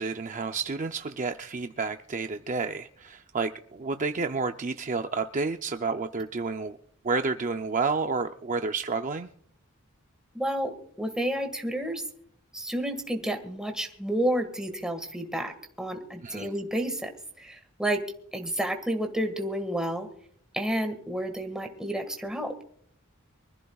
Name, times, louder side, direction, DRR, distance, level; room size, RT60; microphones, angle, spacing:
voice 1, 0.0-6.8 7.0-9.3 16.2-16.5, right 4 dB, 35° right, 7 dB, 0.5 m, -30 dB
voice 2, 10.3-10.7 11.0-12.0 12.5-17.1 17.4-18.0 18.3-20.1 20.5-22.5, right 1 dB, 5° right, 5 dB, 1.7 m, -30 dB
24.5 x 15.0 x 2.4 m, 0.64 s
head